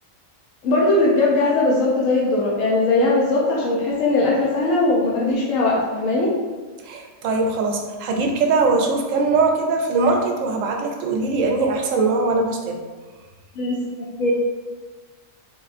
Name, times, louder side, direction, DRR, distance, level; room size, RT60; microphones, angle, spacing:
voice 1, 0.6-6.3 13.6-13.8 14.2-14.3, left 2 dB, 75° left, -4 dB, 1.0 m, -19 dB
voice 2, 6.8-12.8, right 3 dB, 75° right, 2 dB, 0.9 m, -21 dB
3.6 x 3.5 x 2.5 m, 1.4 s
omnidirectional pair, 1.4 m